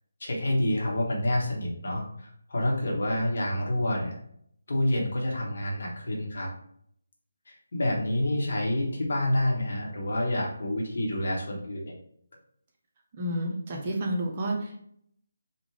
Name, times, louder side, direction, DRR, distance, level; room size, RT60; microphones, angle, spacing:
voice 1, 0.2-4.1 4.7-6.5 7.5-12.0, left 1 dB, 55° left, -2 dB, 1.1 m, -28 dB
voice 2, 13.1-14.8, right 1 dB, 30° right, 0 dB, 0.7 m, -30 dB
3.6 x 2.3 x 3.1 m, 0.66 s
figure-of-eight pair, 150°, 0 cm